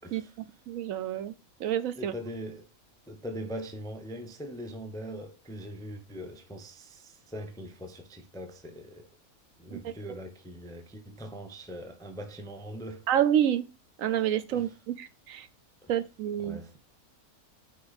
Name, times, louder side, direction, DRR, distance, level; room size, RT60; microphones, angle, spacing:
voice 1, 0.0-0.4 2.0-2.7 3.1-9.1 9.6-13.0 14.5-14.8 15.8-15.9 16.4-16.8, equal, 5° left, 0.4 m, -41 dB
voice 2, 0.7-1.3 1.6-2.1 9.7-9.9 13.1-13.6 14.0-15.5 15.9-16.6, right 10 dB, 70° right, 1.0 m, -28 dB
6.3 x 4.4 x 4.1 m
omnidirectional pair, 1.5 m